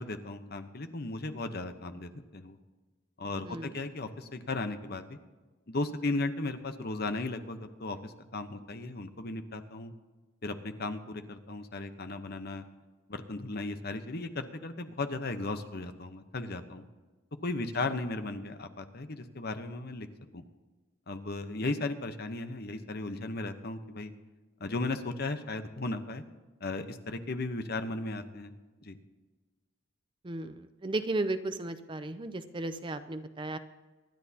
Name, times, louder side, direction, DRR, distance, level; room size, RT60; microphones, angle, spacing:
voice 1, 0.0-2.6 3.2-5.2 5.7-9.9 10.4-12.6 13.1-16.9 17.4-20.1 20.3-20.4 21.1-24.1 24.6-26.2 26.6-28.5 28.8-29.0, left 2 dB, 50° left, 8 dB, 0.9 m, -36 dB
voice 2, 3.4-3.9 30.2-33.6, right 2 dB, 25° right, 10 dB, 0.5 m, -35 dB
25.0 x 10.5 x 2.8 m, 1.3 s
head